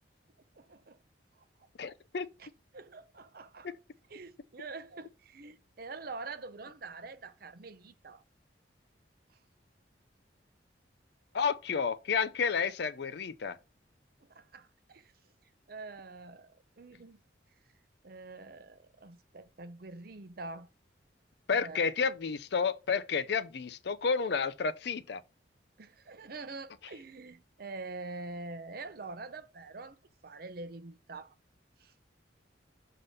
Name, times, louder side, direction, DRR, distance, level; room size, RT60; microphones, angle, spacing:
voice 1, 0.6-1.0 1.4-1.5 2.4-2.5 2.7-3.7 4.1-8.2 14.2-15.1 15.7-17.2 18.0-20.7 21.5-21.9 25.8-30.0 30.2-31.3 31.8-31.9, right 3 dB, 50° right, 0.7 m, -45 dB
voice 2, 1.8-2.3 11.3-13.6 21.5-25.2, left 5 dB, 60° left, 0.5 m, -31 dB
6.7 x 3.6 x 5.3 m
head